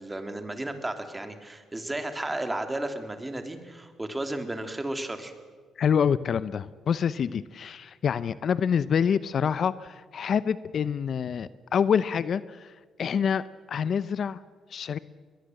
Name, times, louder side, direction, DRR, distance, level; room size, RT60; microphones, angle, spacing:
voice 1, 0.0-5.3, right 1 dB, 15° right, 7 dB, 2.9 m, -33 dB
voice 2, 5.8-12.7 13.0-14.4 14.7-15.0, left 7 dB, 55° left, 16 dB, 0.7 m, -26 dB
22.0 x 21.0 x 7.8 m, 1.5 s
cardioid pair, 90°, 0 cm